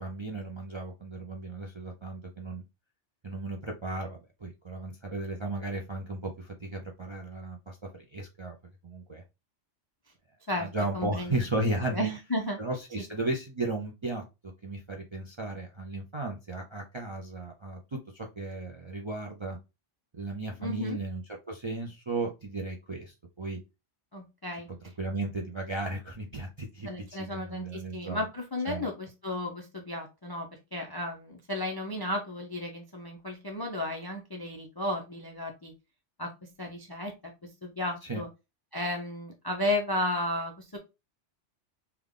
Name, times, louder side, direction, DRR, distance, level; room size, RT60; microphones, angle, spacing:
voice 1, 0.0-2.6 3.2-7.8 8.1-8.5 8.8-9.2 10.6-12.1 12.6-19.6 20.1-23.6 25.0-28.2 28.7-28.9 38.0-38.2, right 2 dB, 40° right, 1 dB, 0.4 m, -35 dB
voice 2, 10.9-11.4 11.9-12.6 20.6-21.0 24.1-24.7 26.9-35.7 36.2-37.1 37.4-38.3 38.7-40.8, left 1 dB, 40° left, 2 dB, 0.3 m, -33 dB
3.4 x 2.3 x 3.6 m, 0.26 s
omnidirectional pair, 1.3 m